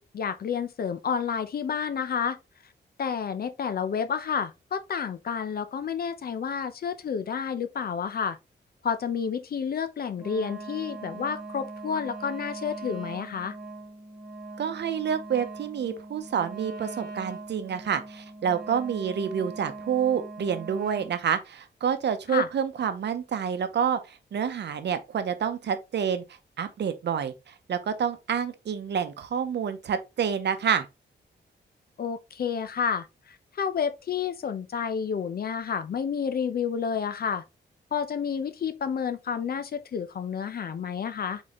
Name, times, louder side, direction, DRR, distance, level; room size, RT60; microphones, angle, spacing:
voice 1, 0.0-2.4 3.0-8.4 8.8-13.6 22.3-22.5 32.0-33.1 33.5-37.4 37.9-41.4, left 7 dB, 55° left, 0.6 m, -30 dB
Wind instrument woodwind instrument, 10.2-21.2, right 3 dB, ahead, 1.9 m, -41 dB
voice 2, 14.6-26.2 26.6-30.9, right 7 dB, 65° right, 0.7 m, -28 dB
4.1 x 4.0 x 3.1 m
wide cardioid pair, 130°, 19 cm